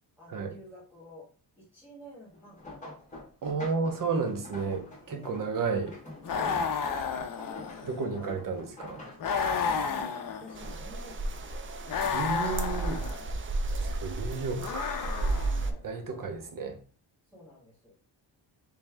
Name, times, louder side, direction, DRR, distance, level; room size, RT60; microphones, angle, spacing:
voice 1, 0.2-1.2 1.6-2.6 3.4-3.9 5.0-5.4 7.7-8.3 9.5-11.5 14.1-14.3 14.9-15.2 15.6-15.8 16.1-16.5 17.3-18.0, equal, 5° right, 1.3 m, -52 dB
sound 1, 2.3-11.9 12.3-13.2 13.6-14.9 15.7-16.0 16.4-16.5, left 2 dB, 15° left, 1.4 m, -46 dB
voice 2, 3.4-6.0 7.8-9.0 12.1-13.0 13.8-15.1 15.8-16.8, right 4 dB, 50° right, 0.9 m, -32 dB
sound 2, 6.2-8.0 9.2-10.8 11.9-13.2 14.6-15.7, left 6 dB, 50° left, 0.6 m, -32 dB
Campo Rio sur de Chile, 10.6-15.7, right 2 dB, 30° right, 0.4 m, -33 dB
3.4 x 3.2 x 3.3 m
wide cardioid pair, 130°, 42 cm